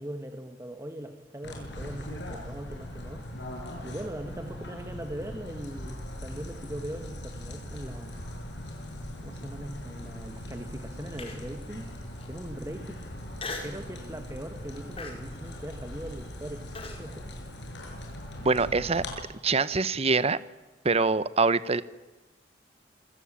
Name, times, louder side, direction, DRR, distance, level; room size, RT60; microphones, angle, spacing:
voice 1, 0.0-3.3 3.8-8.2 9.2-13.0 13.6-17.3 18.4-18.5, right 1 dB, 15° right, 7 dB, 1.7 m, -40 dB
sound 1, 1.4-19.1, left 1 dB, 70° left, 7.1 m, -40 dB
Human voice, 11.2-11.6 12.2-12.3 13.4-13.8 14.3-14.5 15.0-17.0, left 3 dB, 35° left, 4.9 m, -39 dB
voice 2, 18.4-19.0 19.4-20.4 20.8-21.8, right 4 dB, 35° right, 16 dB, 0.9 m, -24 dB
27.5 x 23.0 x 8.9 m, 1.1 s
head